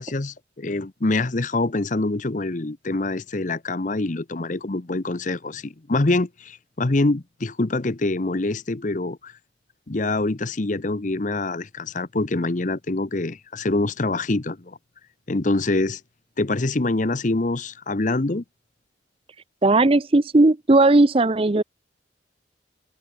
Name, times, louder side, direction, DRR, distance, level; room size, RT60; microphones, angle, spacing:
voice 1, 0.0-9.3 9.9-14.8 15.3-16.0 16.4-18.4, left 2 dB, 45° left, 0.9 m, -25 dB
voice 2, 19.6-21.6, right 2 dB, 30° right, 0.6 m, -17 dB
head